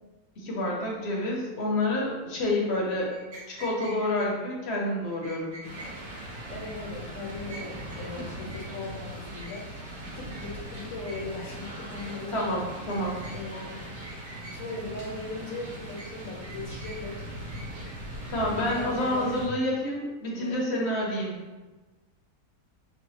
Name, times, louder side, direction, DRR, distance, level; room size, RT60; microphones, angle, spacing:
voice 1, 0.4-3.1 3.6-5.6 12.3-13.2 18.3-21.3, left 1 dB, 50° left, -2 dB, 1.0 m, -28 dB
sound 1, 3.0-4.3 5.1-5.9 6.3-6.8 7.1-8.0 8.3-8.9 9.4-9.9 10.3-10.5 10.7-11.5 11.8-12.4 12.9-13.7 14.0-14.8 15.4-16.1 16.4-17.2 17.5-19.4, right 1 dB, 45° right, 0.8 m, -47 dB
sound 2, 5.6-19.5, right 1 dB, 70° right, 1.5 m, -40 dB
voice 2, 6.5-12.3 13.3-13.8 14.5-17.1 18.7-19.3 20.3-20.6, left 2 dB, 70° left, -2 dB, 1.2 m, -39 dB
5.5 x 2.3 x 2.7 m, 1.2 s
omnidirectional pair, 1.6 m